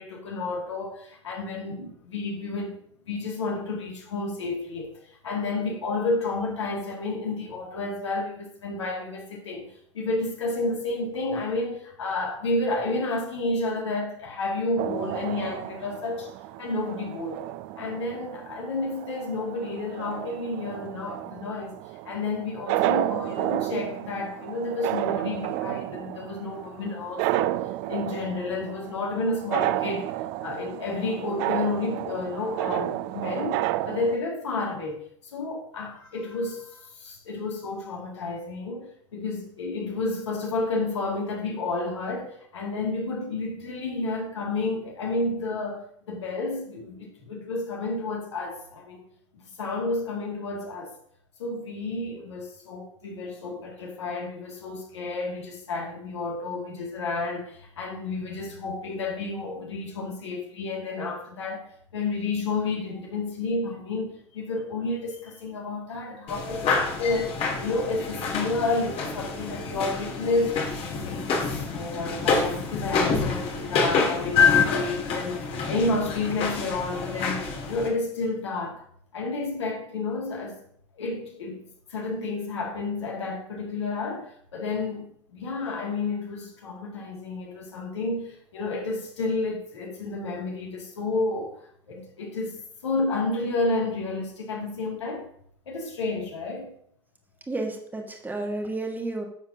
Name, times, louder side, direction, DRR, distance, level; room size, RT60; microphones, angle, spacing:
voice 1, 0.0-16.3 16.6-17.5 17.8-21.8 22.0-27.6 27.9-30.1 30.4-35.0 35.3-50.9 51.4-70.7 71.0-78.8 79.1-80.6 81.0-95.3 95.7-96.7, left 3 dB, 70° left, 2.3 m, -31 dB
sound 1, 14.8-34.2, right 15 dB, 50° right, 0.4 m, -31 dB
sound 2, 66.3-77.9, left 5 dB, 40° left, 2.0 m, -27 dB
voice 2, 97.5-99.3, right 2 dB, 10° right, 1.5 m, -31 dB
10.5 x 7.0 x 2.8 m
figure-of-eight pair, 75°, 15 cm